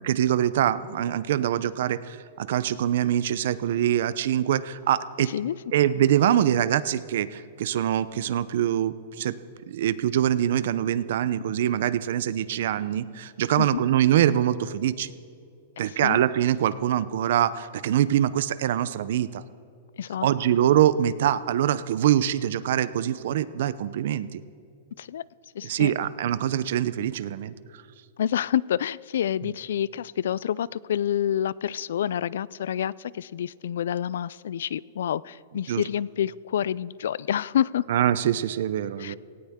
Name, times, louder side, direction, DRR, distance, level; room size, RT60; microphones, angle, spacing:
voice 1, 0.0-5.3 5.7-9.3 9.7-15.1 15.8-19.4 20.2-24.4 25.6-27.8 35.7-35.8 37.9-39.2, right 11 dB, 60° right, 16 dB, 0.6 m, -24 dB
voice 2, 20.0-20.3 25.0-25.2 25.5-25.9 28.2-37.9 39.0-39.1, left 10 dB, 75° left, 22 dB, 0.3 m, -28 dB
18.0 x 18.0 x 3.7 m, 2.4 s
supercardioid pair, 170°, 0 cm